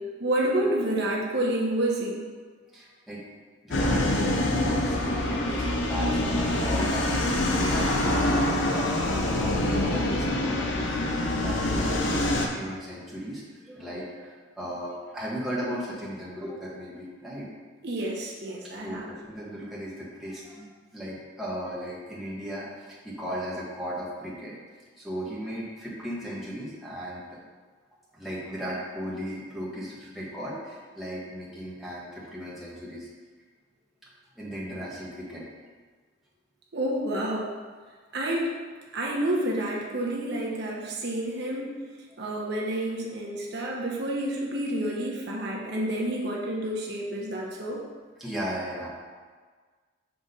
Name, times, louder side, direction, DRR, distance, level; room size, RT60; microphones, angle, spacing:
voice 1, 0.2-2.2 17.8-19.1 36.7-37.5 38.1-38.5 38.9-41.7 42.2-47.8, right 1 dB, 55° right, -3 dB, 1.1 m, -29 dB
voice 2, 2.7-3.2 3.6-11.0 11.4-17.5 18.5-24.6 25.0-27.4 28.1-33.1 34.3-35.4 48.2-48.9, equal, ahead, -7 dB, 1.4 m, -36 dB
sound 1, 3.7-12.5, left 1 dB, 65° left, 0.7 m, -25 dB
6.0 x 3.7 x 5.4 m, 1.5 s
head